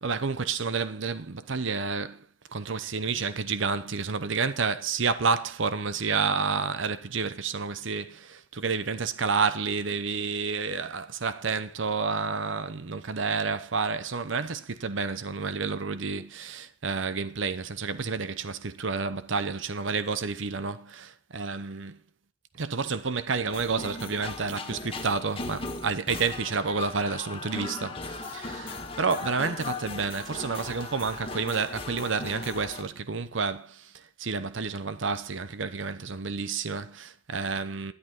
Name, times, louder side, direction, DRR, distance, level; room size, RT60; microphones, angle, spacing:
voice 1, 0.0-2.2 2.5-22.0 22.6-28.0 28.3-33.8 34.2-37.9, right 5 dB, 70° right, 0.8 m, -30 dB
sound 1, 23.5-32.8, left 3 dB, 25° left, 1.7 m, -38 dB
12.5 x 11.0 x 4.5 m
head